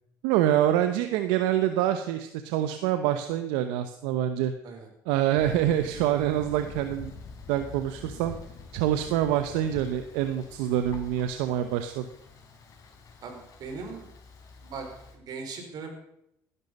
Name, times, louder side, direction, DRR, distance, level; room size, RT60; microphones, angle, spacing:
voice 1, 0.2-4.5 5.1-7.1 7.5-8.3 8.7-12.0, right 11 dB, 85° right, 9 dB, 0.9 m, -26 dB
Thunder, 5.4-15.2, left 4 dB, 45° left, 4.2 m, -46 dB
voice 2, 13.2-14.1 14.6-14.9 15.1-15.9, right 4 dB, 60° right, 3 dB, 4.8 m, -39 dB
17.0 x 11.0 x 5.5 m, 0.79 s
supercardioid pair, 85°, 8 cm